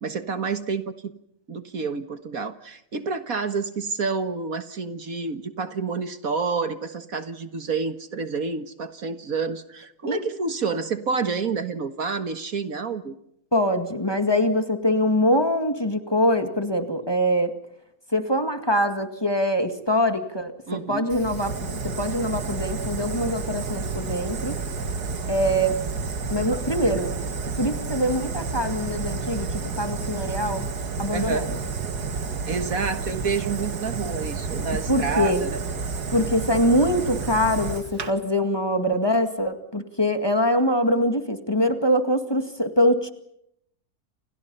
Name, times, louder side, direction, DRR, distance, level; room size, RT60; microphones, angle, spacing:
voice 1, 0.0-1.1 1.5-13.1 20.7-21.1 31.1-31.5 32.4-35.6, right 5 dB, 60° right, 9 dB, 2.0 m, -29 dB
voice 2, 13.5-17.5 18.1-24.6 25.3-25.8 26.3-27.1 27.6-30.7 31.0-31.5 34.9-35.5 36.1-43.1, equal, 15° left, 6 dB, 2.2 m, -23 dB
Fire, 21.1-38.1, right 4 dB, 80° right, 2.3 m, -30 dB
30.0 x 28.5 x 5.6 m, 0.75 s
omnidirectional pair, 1.7 m